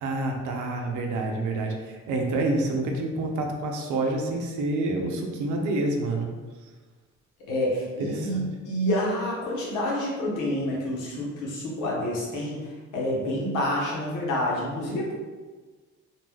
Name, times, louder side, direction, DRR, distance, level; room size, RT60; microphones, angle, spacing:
voice 1, 0.0-6.3 8.0-8.4, right 2 dB, 75° right, 2 dB, 0.6 m, -28 dB
voice 2, 7.5-15.1, left 1 dB, 90° left, -4 dB, 0.9 m, -28 dB
2.4 x 2.2 x 3.3 m, 1.4 s
cardioid pair, 90°, 30 cm